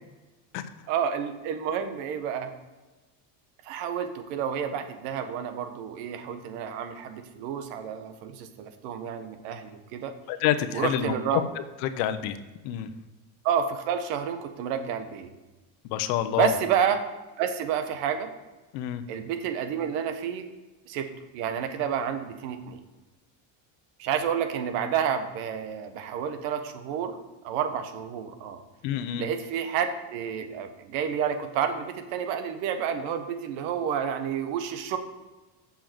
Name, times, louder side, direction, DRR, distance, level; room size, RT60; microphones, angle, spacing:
voice 1, 0.9-2.5 3.6-10.1 10.7-11.4 13.4-15.3 16.4-17.0 17.4-18.3 19.1-20.4 20.9-21.1 21.3-22.8 24.0-27.2 27.4-28.6 29.2-35.0, right 8 dB, 80° right, 8 dB, 1.4 m, -29 dB
voice 2, 10.3-11.4 11.8-12.4 12.6-12.9 15.9-16.5 18.7-19.0 28.8-29.3, left 11 dB, 85° left, 11 dB, 1.0 m, -27 dB
7.3 x 5.7 x 7.6 m, 1.2 s
cardioid pair, 145°, 46 cm